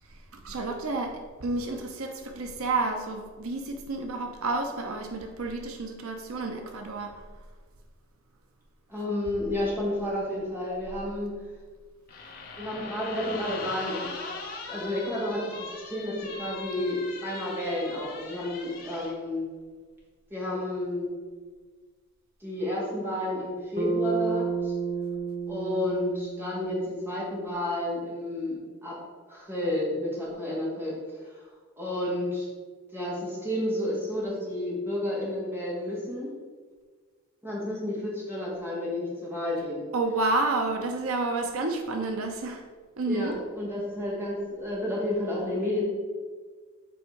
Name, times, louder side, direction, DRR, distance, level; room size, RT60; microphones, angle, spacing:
voice 1, 0.1-7.2 39.9-42.6 43.0-43.4, right 3 dB, 80° right, 4 dB, 0.7 m, -30 dB
voice 2, 8.9-11.3 12.6-19.4 20.3-21.1 22.4-24.7 25.5-29.0 29.3-30.9 31.2-31.4 31.8-32.5 32.9-36.3 37.4-39.8 43.1-45.8, left 1 dB, 10° right, -6 dB, 2.0 m, -31 dB
sound 1, 12.1-19.1, left 3 dB, 45° left, 1.0 m, -40 dB
Bass guitar, 23.8-28.1, right 5 dB, 35° right, 0.8 m, -32 dB
7.2 x 4.6 x 4.6 m, 1.5 s
head